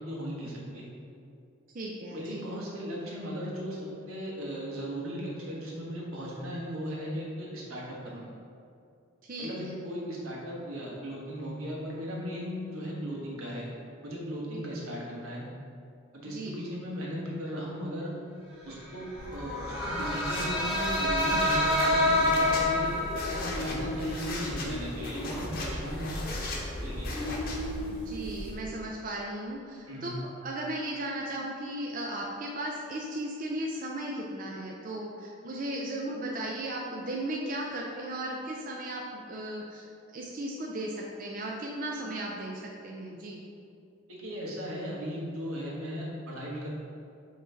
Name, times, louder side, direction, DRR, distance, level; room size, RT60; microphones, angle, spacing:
voice 1, 0.1-0.8 2.1-3.8 4.1-8.2 9.4-13.7 14.0-15.4 16.1-18.1 18.6-19.0 19.3-22.9 23.1-26.2 26.8-27.1 29.9-30.1 44.1-46.7, equal, 85° right, -4 dB, 1.4 m, -37 dB
voice 2, 1.7-2.4 9.3-9.7 14.5-14.7 16.3-16.8 27.9-39.9 40.1-43.4, right 1 dB, 40° right, -2 dB, 0.4 m, -36 dB
sound 1, 19.0-28.5, left 1 dB, 5° right, 1.5 m, -30 dB
sound 2, 19.2-27.8, left 1 dB, 40° left, 0.9 m, -38 dB
5.7 x 3.2 x 5.5 m, 2.5 s
head